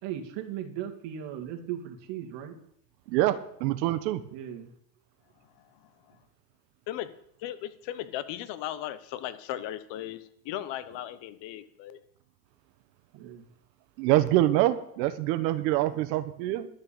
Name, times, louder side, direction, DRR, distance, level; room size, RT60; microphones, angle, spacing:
voice 1, 0.0-2.6 4.3-4.7 13.1-13.5 16.0-16.1, right 10 dB, 60° right, 4 dB, 2.5 m, -37 dB
voice 2, 3.1-4.2 14.0-16.7, right 15 dB, 80° right, 11 dB, 1.2 m, -25 dB
voice 3, 5.5-6.2 6.9-7.1 7.4-12.0, left 12 dB, 60° left, 14 dB, 1.2 m, -37 dB
12.0 x 6.8 x 8.6 m, 0.68 s
supercardioid pair, 120°, 49 cm